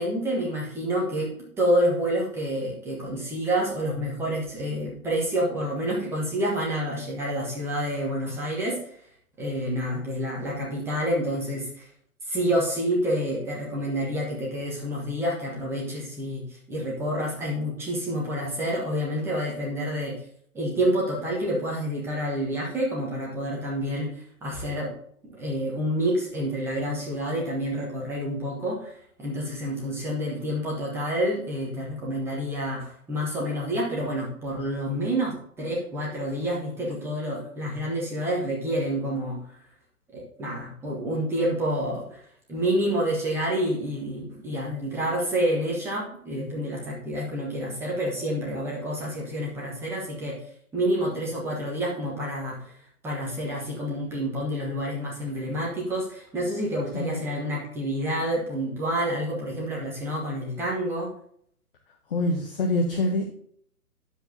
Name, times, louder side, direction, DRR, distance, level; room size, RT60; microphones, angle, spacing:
voice 1, 0.0-1.3 1.6-8.8 9.4-11.9 12.2-20.1 20.5-24.9 25.2-39.4 40.1-42.2 42.5-50.4 50.7-52.7 53.0-61.1, equal, 5° right, -4 dB, 1.3 m, -28 dB
voice 2, 56.9-57.3 62.1-63.3, left 2 dB, 35° left, 3 dB, 1.0 m, -25 dB
8.9 x 7.4 x 2.8 m, 0.63 s
figure-of-eight pair, 135°, 46 cm